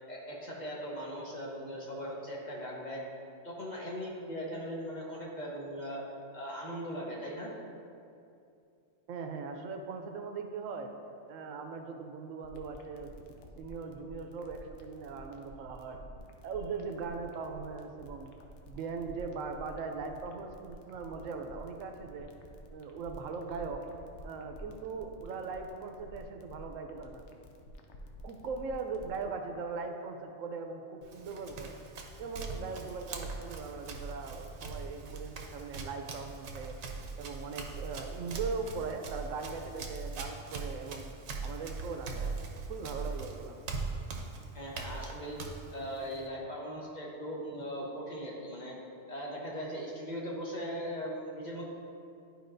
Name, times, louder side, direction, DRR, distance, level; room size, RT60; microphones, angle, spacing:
voice 1, 0.1-3.0 3.4-6.0 6.3-7.5 44.5-45.4 45.7-48.8 49.1-51.6, equal, 35° left, -3 dB, 1.2 m, -39 dB
voice 2, 9.1-10.9 11.3-16.0 16.4-18.3 18.6-22.3 22.7-23.8 24.2-27.3 28.2-31.8 32.2-36.8 37.2-41.1 41.4-42.3 42.7-43.6, right 4 dB, 90° right, 5 dB, 1.0 m, -40 dB
sound 1, 12.4-29.2, left 1 dB, 70° left, 0.9 m, -51 dB
Run, 31.0-46.3, right 4 dB, 65° right, 1.0 m, -41 dB
11.5 x 4.8 x 2.6 m, 2.5 s
omnidirectional pair, 1.3 m